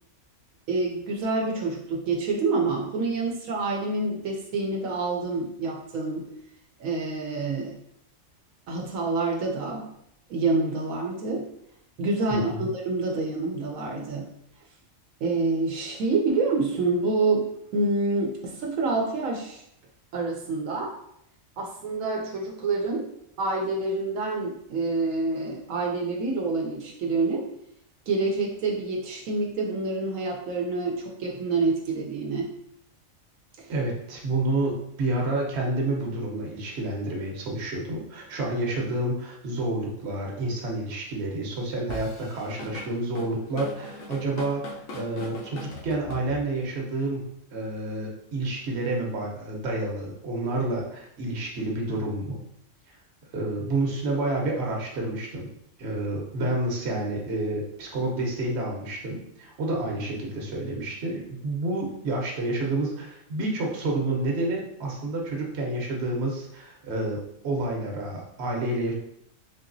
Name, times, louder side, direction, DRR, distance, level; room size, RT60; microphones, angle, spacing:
voice 1, 0.7-6.3 6.8-7.7 8.7-9.9 10.3-11.5 12.0-14.3 15.2-19.6 20.1-20.9 21.6-23.1 23.4-27.5 28.1-32.5 33.6-33.7 56.4-56.6 59.7-59.8, right 3 dB, 80° right, 0 dB, 1.0 m, -27 dB
voice 2, 12.3-12.7 33.7-47.2 47.5-52.4 53.3-55.5 55.8-68.9, right 2 dB, 55° right, -1 dB, 1.0 m, -29 dB
Drum kit / Drum, 41.9-46.7, left 2 dB, 80° left, 1.1 m, -40 dB
4.0 x 2.8 x 2.6 m, 0.74 s
omnidirectional pair, 1.4 m